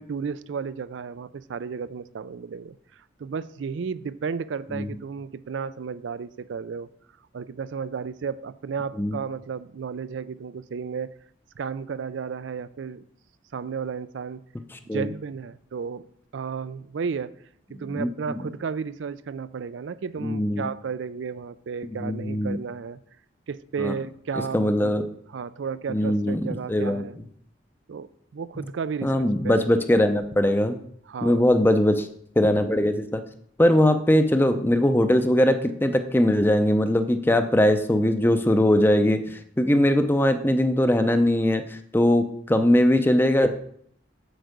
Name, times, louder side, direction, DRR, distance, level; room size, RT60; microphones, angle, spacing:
voice 1, 0.0-6.9 7.3-11.1 11.6-13.0 13.5-14.4 14.8-16.0 16.3-17.3 17.7-23.0 23.5-24.9 25.3-27.2 27.9-29.7 31.1-31.5 33.8-34.0, right 6 dB, 80° right, 16 dB, 0.4 m, -33 dB
voice 2, 17.8-18.4 20.2-20.6 21.8-22.6 23.8-23.9 24.5-25.0 25.9-27.0 29.0-30.8 31.2-32.1 32.4-33.2 33.6-43.5, left 1 dB, 10° left, 8 dB, 0.5 m, -21 dB
7.9 x 4.7 x 6.6 m, 0.65 s
head